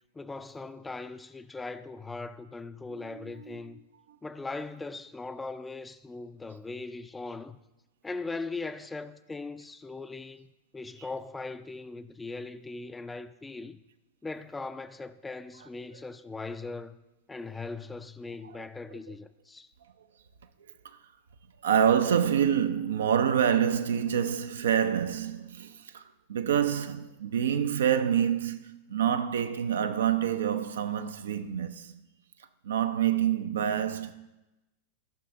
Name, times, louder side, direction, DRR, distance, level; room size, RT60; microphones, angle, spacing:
voice 1, 0.1-3.8 4.2-7.6 8.0-13.8 14.2-17.0 17.3-19.7, left 3 dB, 10° left, 0.4 m, -39 dB
voice 2, 2.9-3.8 11.0-11.1 15.6-16.0 18.4-19.1 20.8-21.0 21.6-32.0 32.6-34.2, right 9 dB, 65° right, 0.5 m, -27 dB
13.0 x 6.0 x 3.7 m
figure-of-eight pair, 90°, 0 cm